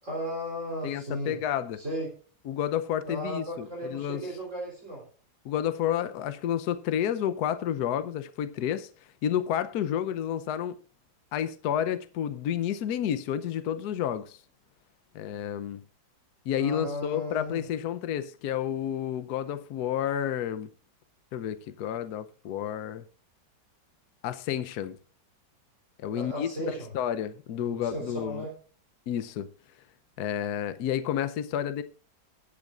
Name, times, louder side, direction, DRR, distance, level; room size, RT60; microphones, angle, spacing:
voice 1, 0.0-1.4 1.8-2.1 3.1-5.0 16.6-17.6 26.1-26.9 27.7-28.5, equal, 40° right, 4.0 m, -35 dB
voice 2, 0.8-1.8 2.4-4.2 5.4-8.9 9.2-10.7 11.3-14.4 15.1-15.8 16.5-20.7 21.3-23.0 24.2-25.0 26.0-28.5 29.1-29.5 30.2-31.8, left 10 dB, 65° left, 1.2 m, -30 dB
21.0 x 8.6 x 2.5 m
omnidirectional pair, 2.0 m